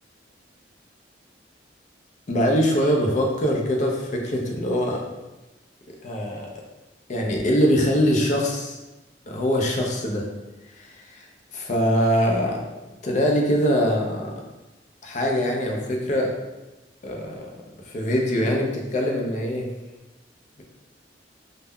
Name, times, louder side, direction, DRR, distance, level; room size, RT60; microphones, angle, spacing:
voice 1, 2.3-5.0 6.0-6.5 7.1-8.8 9.3-10.3 10.8-11.3 11.5-12.6 13.0-14.3 15.0-16.3 17.0-17.5 17.9-19.7, equal, 40° left, 0 dB, 0.4 m, -23 dB
2.1 x 2.0 x 3.5 m, 1.0 s
head